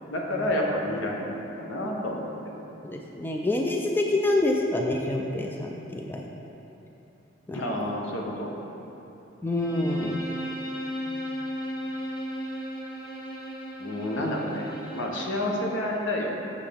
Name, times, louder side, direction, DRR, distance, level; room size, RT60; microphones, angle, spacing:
voice 1, 0.1-2.6 7.5-8.5 13.8-16.3, left 1 dB, 70° left, -1 dB, 1.0 m, -29 dB
voice 2, 2.8-6.2 7.5-7.6 9.4-10.2 14.2-14.3, left 2 dB, 10° left, 0 dB, 0.3 m, -27 dB
Bowed string instrument, 9.5-15.2, equal, 50° left, 1.3 m, -35 dB
7.2 x 6.8 x 3.5 m, 3.0 s
head